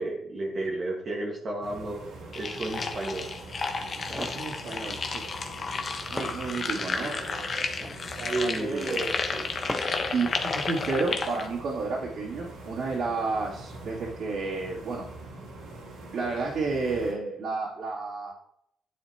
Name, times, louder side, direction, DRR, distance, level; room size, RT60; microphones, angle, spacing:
voice 1, 0.0-2.0 2.3-3.3 7.0-7.3 8.2-9.1 9.3-9.9, right 2 dB, 45° right, -2 dB, 1.7 m, -32 dB
sound 1, 1.6-17.1, right 2 dB, 80° right, 3.6 m, -44 dB
sound 2, 2.3-11.5, left 4 dB, 45° left, 1.1 m, -32 dB
sound 3, 3.9-4.5 5.7-5.8 6.2-7.0 7.6-8.1 9.7-10.1, left 1 dB, 5° left, 0.7 m, -37 dB
voice 2, 4.2-5.2 5.6-9.1 10.1-15.0 16.1-18.3, right 3 dB, 65° right, -7 dB, 2.8 m, -32 dB
9.6 x 7.8 x 3.0 m, 0.73 s
cardioid pair, 90°, 0 cm